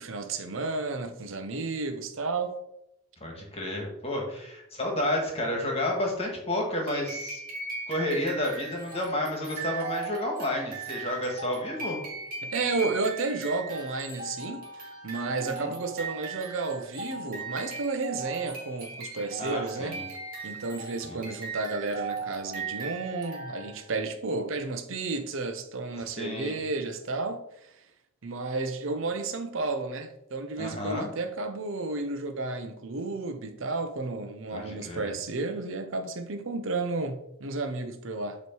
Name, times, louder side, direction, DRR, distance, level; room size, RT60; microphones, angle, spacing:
voice 1, 0.0-2.6 12.4-14.7 15.0-20.0 20.4-27.7 28.2-38.4, right 3 dB, 65° right, 0.7 m, -32 dB
voice 2, 3.2-7.4 7.9-12.0 15.3-15.7 19.4-20.0 21.0-21.2 26.2-26.6 30.6-31.1 34.5-35.1, left 1 dB, 25° left, 1.6 m, -31 dB
sound 1, 6.9-23.9, right 4 dB, 40° right, 2.0 m, -38 dB
8.4 x 3.1 x 4.6 m
head